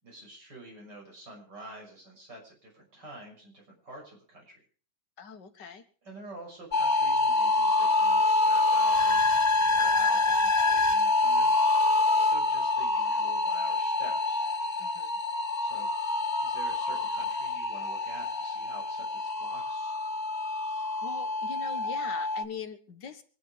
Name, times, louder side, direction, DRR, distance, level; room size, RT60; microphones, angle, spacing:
voice 1, 0.0-4.5 6.0-11.5 12.2-14.5 15.6-19.9, right 2 dB, 75° right, 0 dB, 6.9 m, -48 dB
voice 2, 5.2-5.8 14.8-15.2 21.0-23.2, left 6 dB, 75° left, 8 dB, 2.1 m, -42 dB
sound 1, 6.7-22.5, left 2 dB, 55° left, 0.4 m, -26 dB
25.0 x 10.0 x 5.0 m, 0.42 s
omnidirectional pair, 1.9 m